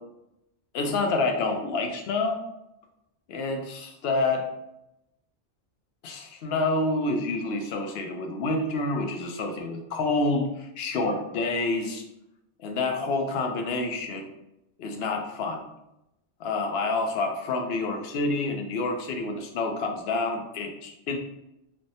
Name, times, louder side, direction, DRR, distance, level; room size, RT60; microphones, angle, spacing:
voice 1, 0.7-2.4 3.3-4.5 6.0-12.0 12.6-14.3 14.8-15.7 16.4-21.2, left 3 dB, 65° left, 3 dB, 0.7 m, -28 dB
3.3 x 2.0 x 2.6 m, 0.87 s
omnidirectional pair, 1.2 m